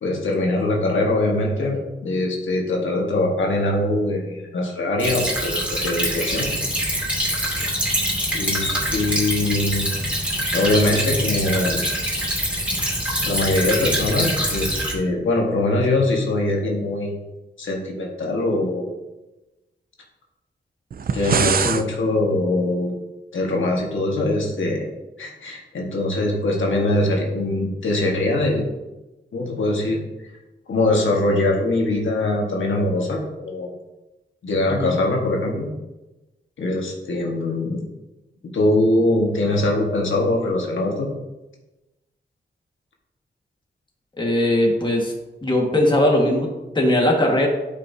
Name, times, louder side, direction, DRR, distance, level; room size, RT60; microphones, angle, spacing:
voice 1, 0.0-6.5 8.3-9.9 10.5-11.8 13.2-17.2 17.6-18.9 21.1-22.9 23.3-24.8 25.2-28.6 29.3-30.0 30.7-33.7 34.4-35.7 36.6-37.8 38.5-41.1, left 2 dB, 90° left, -1 dB, 1.6 m, -22 dB
Stream / Trickle dribble, 5.0-14.9, equal, 5° right, 2.5 m, -24 dB
sound 1, 20.9-21.9, right 6 dB, 50° right, 0.4 m, -22 dB
voice 2, 44.2-45.1 45.4-47.5, left 1 dB, 25° left, -1 dB, 1.7 m, -19 dB
12.0 x 5.3 x 2.8 m, 1.0 s
wide cardioid pair, 115°, 20 cm